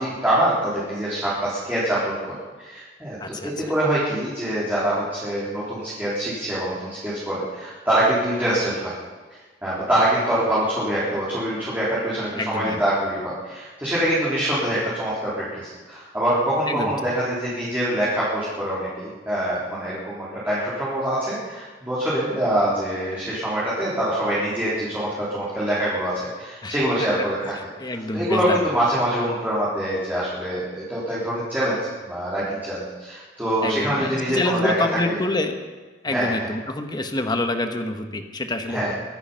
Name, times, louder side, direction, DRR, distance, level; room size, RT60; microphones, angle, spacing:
voice 1, 0.0-2.1 2.6-8.9 9.6-27.5 27.9-35.2 36.1-36.5 38.7-38.9, right 1 dB, 10° right, -9 dB, 3.8 m, -24 dB
voice 2, 3.2-3.5 12.3-12.8 16.7-16.9 26.6-26.8 27.4-28.7 33.6-35.6 36.0-38.9, left 2 dB, 25° left, 6 dB, 1.2 m, -27 dB
23.0 x 9.8 x 5.7 m, 1.3 s
head